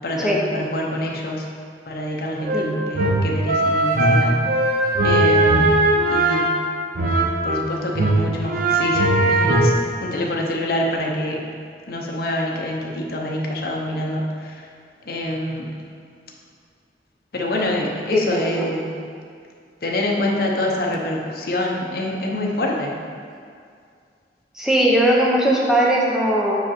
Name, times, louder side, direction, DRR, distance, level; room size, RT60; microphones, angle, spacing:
voice 1, 0.0-1.5 1.9-4.4 5.0-5.8 6.1-6.6 7.4-9.7 10.0-11.5 11.9-14.7 15.0-15.8 17.3-18.9 19.8-23.0, left 1 dB, 60° left, -1 dB, 0.8 m, -26 dB
sound 1, 2.4-7.6 7.9-9.7, right 1 dB, 50° right, 0.6 m, -19 dB
voice 2, 18.1-18.7 24.5-26.5, right 1 dB, 5° right, -4 dB, 0.7 m, -19 dB
5.0 x 4.9 x 4.2 m, 2.2 s
head